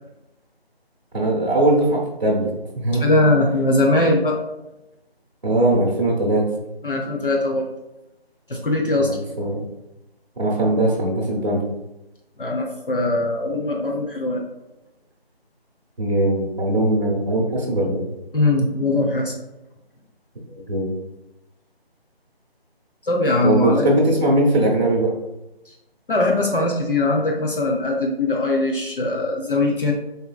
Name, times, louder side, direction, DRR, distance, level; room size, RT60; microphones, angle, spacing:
voice 1, 1.1-3.0 5.4-6.4 9.0-9.6 10.4-11.6 16.0-18.1 20.7-21.0 23.4-25.1, right 1 dB, 45° right, -6 dB, 0.7 m, -20 dB
voice 2, 3.0-4.4 6.8-7.7 8.5-9.1 12.4-14.4 18.3-19.3 23.0-23.9 25.7-25.8 26.1-29.9, left 2 dB, 60° left, 0 dB, 0.5 m, -21 dB
3.5 x 2.6 x 2.2 m, 0.93 s
figure-of-eight pair, 175°, 31 cm